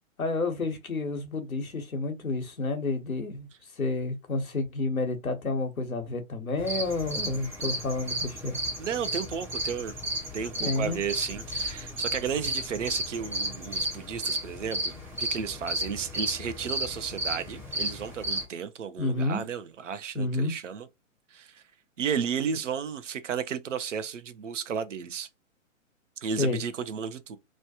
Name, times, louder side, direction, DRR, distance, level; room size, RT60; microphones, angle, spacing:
voice 1, 0.2-3.5 3.8-8.6 10.6-11.0 19.0-19.4 20.1-20.5 26.4-26.6, left 3 dB, 85° left, 1.1 m, -30 dB
sound 1, 6.6-18.4, right 1 dB, 5° right, 0.8 m, -33 dB
voice 2, 8.8-9.9 10.3-20.9 21.3-21.6 22.0-25.3 26.2-27.4, right 7 dB, 60° right, 0.7 m, -33 dB
3.0 x 2.2 x 2.8 m
figure-of-eight pair, 125°, 41 cm